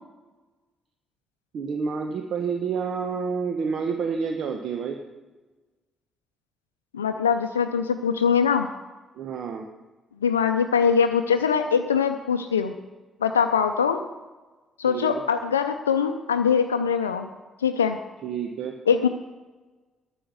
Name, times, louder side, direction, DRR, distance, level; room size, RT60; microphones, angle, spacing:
voice 1, 1.5-5.0 9.1-9.6 14.8-15.2 18.2-18.8, right 5 dB, 60° right, 4 dB, 1.1 m, -29 dB
voice 2, 6.9-8.7 10.2-12.7 13.2-14.0 14.8-17.3 17.6-18.0 18.9-19.1, left 6 dB, 90° left, 6 dB, 0.4 m, -22 dB
11.5 x 7.1 x 7.6 m, 1.2 s
hypercardioid pair, 45°, 0 cm